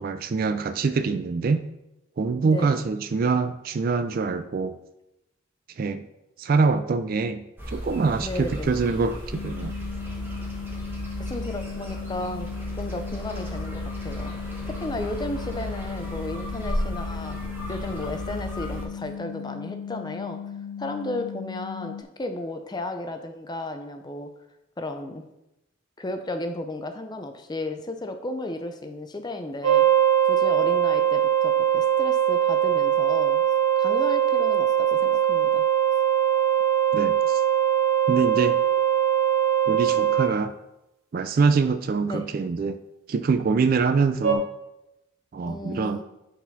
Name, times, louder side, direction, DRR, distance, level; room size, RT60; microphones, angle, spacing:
voice 1, 0.0-1.7 2.2-4.7 5.8-6.1 6.4-9.7 36.9-37.4 38.1-38.6 39.7-40.5 41.1-42.8 43.1-44.5 45.3-46.0, right 4 dB, 45° right, 10 dB, 0.3 m, -24 dB
voice 2, 2.4-2.9 8.2-8.8 11.2-12.5 12.7-14.4 14.7-17.4 17.7-20.4 20.8-24.3 24.8-25.3 26.0-29.9 30.2-33.4 33.8-35.6 42.1-42.3 45.4-46.0, left 1 dB, 20° left, 6 dB, 0.5 m, -34 dB
sound 1, 7.6-18.8, equal, 10° right, 1.1 m, -34 dB
sound 2, 9.3-22.0, left 7 dB, 70° left, 0.4 m, -37 dB
sound 3, 29.6-40.3 44.2-44.3, right 10 dB, 75° right, 0.8 m, -21 dB
8.4 x 4.1 x 4.0 m, 0.91 s
head